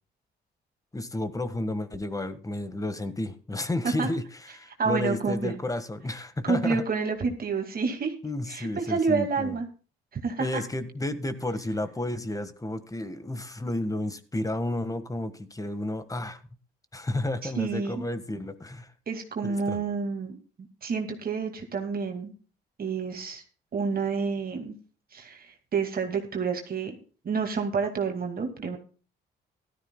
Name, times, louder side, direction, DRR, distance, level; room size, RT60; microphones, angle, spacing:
voice 1, 0.9-6.8 8.2-9.6 10.4-16.4 16.9-18.9 19.4-19.8, left 1 dB, 15° left, 12 dB, 1.6 m, -32 dB
voice 2, 4.8-5.5 6.4-8.1 8.5-9.7 10.1-10.6 17.4-18.0 19.1-20.4 20.8-22.3 22.8-23.4 23.7-24.7 25.1-26.9 27.2-28.8, right 5 dB, 50° right, 4 dB, 2.3 m, -29 dB
16.5 x 13.0 x 2.3 m, 0.37 s
cardioid pair, 90°, 20 cm